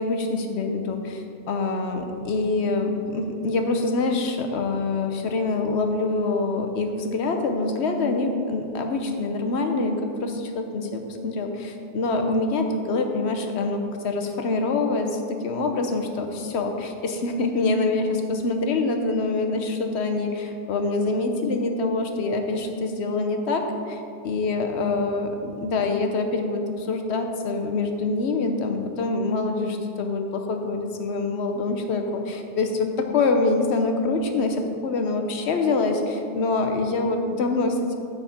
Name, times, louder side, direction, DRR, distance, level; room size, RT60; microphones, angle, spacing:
voice 1, 0.0-37.9, left 3 dB, 75° left, 4 dB, 1.1 m, -25 dB
9.3 x 4.1 x 7.1 m, 2.5 s
omnidirectional pair, 1.1 m